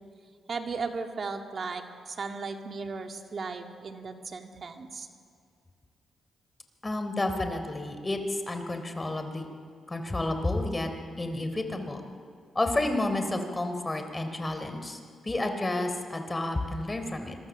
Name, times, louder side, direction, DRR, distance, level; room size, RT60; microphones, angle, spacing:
voice 1, 0.5-5.1, right 4 dB, 50° right, 4 dB, 2.1 m, -36 dB
voice 2, 6.8-9.5 9.9-10.9 11.2-12.0 12.5-17.4, left 2 dB, 20° left, 6 dB, 3.6 m, -30 dB
26.5 x 23.0 x 7.3 m, 2.2 s
cardioid pair, 75°, 0 cm